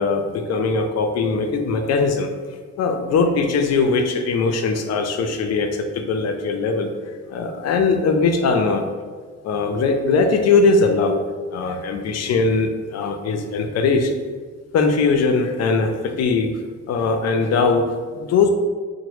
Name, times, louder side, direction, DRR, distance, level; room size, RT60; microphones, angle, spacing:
voice 1, 0.0-2.3 2.8-6.9 7.3-8.8 9.4-11.2 11.5-14.1 14.7-16.5 16.9-18.5, left 4 dB, 60° left, 6 dB, 0.4 m, -20 dB
2.9 x 2.1 x 3.1 m, 1.5 s
cardioid pair, 90°, 30 cm